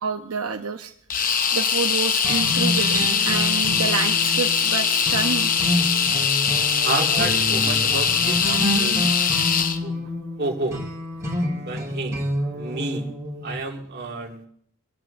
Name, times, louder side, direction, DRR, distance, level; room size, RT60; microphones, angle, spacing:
voice 1, 0.0-0.9 1.5-5.5, right 5 dB, 75° right, 3 dB, 0.8 m, -28 dB
sound 1, 1.1-9.8, left 7 dB, 40° left, 0.8 m, -22 dB
sound 2, 2.2-13.5, equal, 15° right, 6.9 m, -28 dB
voice 2, 6.8-9.0 9.8-10.1 10.4-10.8 11.3-12.2 12.5-13.1 13.4-14.5, right 3 dB, 50° right, 0 dB, 2.1 m, -30 dB
26.0 x 13.5 x 2.6 m, 0.66 s
head